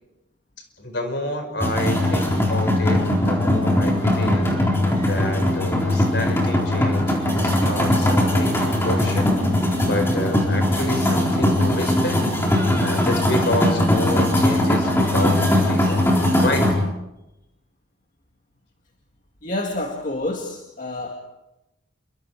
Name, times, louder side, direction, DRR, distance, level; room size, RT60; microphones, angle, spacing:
voice 1, 0.8-4.5 5.0-9.3 9.8-12.2 12.8-16.0 16.4-16.8, left 1 dB, 55° left, 6 dB, 5.0 m, -29 dB
sound 1, 1.6-16.7, left 1 dB, 10° left, 4.1 m, -20 dB
voice 2, 19.4-21.2, left 2 dB, 40° left, 2 dB, 2.1 m, -28 dB
28.5 x 24.5 x 4.8 m, 0.93 s
head